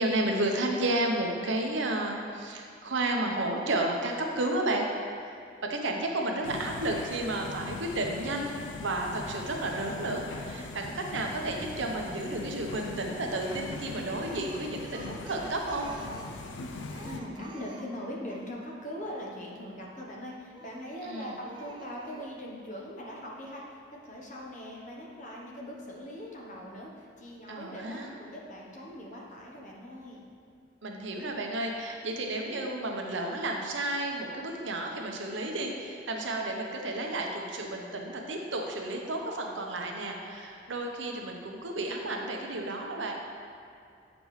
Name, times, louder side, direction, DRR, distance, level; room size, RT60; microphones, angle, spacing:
voice 1, 0.0-4.9 5.1-15.9 21.0-21.3 27.5-28.1 30.8-43.1, right 2 dB, 80° right, 1 dB, 0.8 m, -32 dB
sound 1, 6.4-17.2, left 3 dB, 80° left, 0.4 m, -41 dB
Speech, 14.2-18.5 20.5-21.0 21.4-22.3, right 2 dB, 25° right, 0.4 m, -49 dB
voice 2, 17.0-30.2, equal, 40° left, -2 dB, 0.9 m, -41 dB
8.0 x 5.1 x 3.2 m, 2.5 s
head